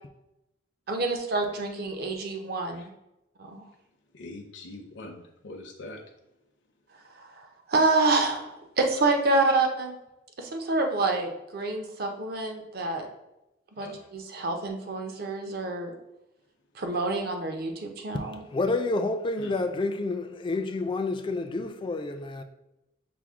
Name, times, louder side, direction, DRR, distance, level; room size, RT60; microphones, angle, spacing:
voice 1, 0.9-2.9 3.5-3.6 7.2-10.0 10.4-13.1 13.8-15.9 16.8-18.4, right 3 dB, 50° right, 0.6 m, -27 dB
voice 2, 4.1-6.0 13.8-14.0 19.4-19.5, left 2 dB, 65° left, 0.6 m, -43 dB
voice 3, 18.1-22.4, left 3 dB, 25° left, 0.3 m, -29 dB
5.9 x 2.1 x 3.5 m
head